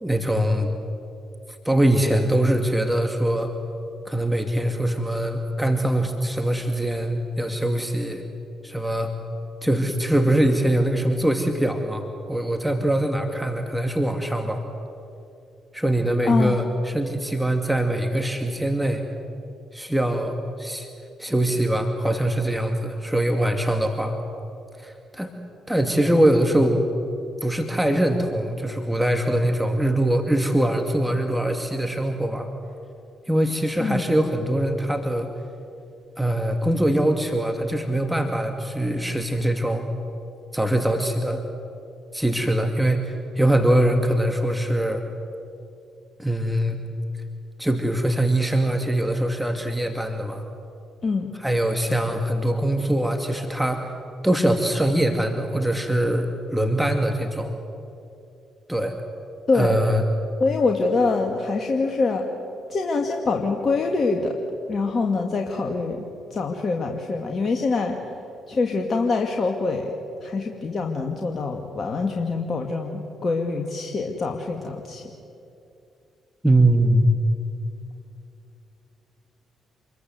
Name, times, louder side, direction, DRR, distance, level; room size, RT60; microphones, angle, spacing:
voice 1, 0.0-0.7 1.6-3.5 4.1-8.2 8.6-9.1 9.6-14.6 15.7-19.0 19.7-20.9 21.2-24.2 24.8-25.3 25.7-26.8 27.4-32.5 33.3-35.3 36.2-39.8 40.5-41.4 42.1-45.0 46.2-46.8 47.6-50.4 51.3-53.8 54.2-57.5 58.7-58.9 59.5-60.0 76.4-77.1, right 1 dB, 5° right, 4 dB, 2.5 m, -22 dB
voice 2, 16.2-16.6 33.8-34.1 51.0-51.3 59.5-59.8 60.4-62.3 62.7-64.4 64.7-66.0 66.3-68.0 68.5-69.9 70.2-75.0, left 3 dB, 45° left, 2 dB, 2.3 m, -24 dB
27.5 x 22.0 x 8.0 m, 2.7 s
hypercardioid pair, 45°, 0 cm